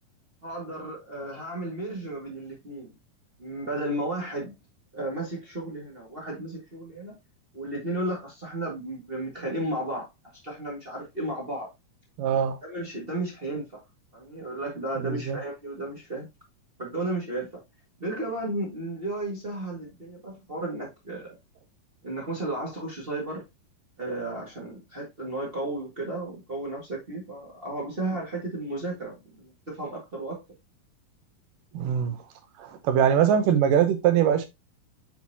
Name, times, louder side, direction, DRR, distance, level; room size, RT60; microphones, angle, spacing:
voice 1, 0.4-2.9 3.4-4.5 4.9-7.1 7.5-10.1 10.4-11.7 12.6-13.8 14.1-16.3 16.8-17.6 18.0-21.3 22.0-23.4 24.0-30.4, right 1 dB, 30° right, 1.1 m, -33 dB
voice 2, 12.2-12.6 15.0-15.4 31.7-32.2 32.6-34.5, right 8 dB, 80° right, 2.6 m, -22 dB
7.9 x 4.5 x 2.7 m
omnidirectional pair, 3.9 m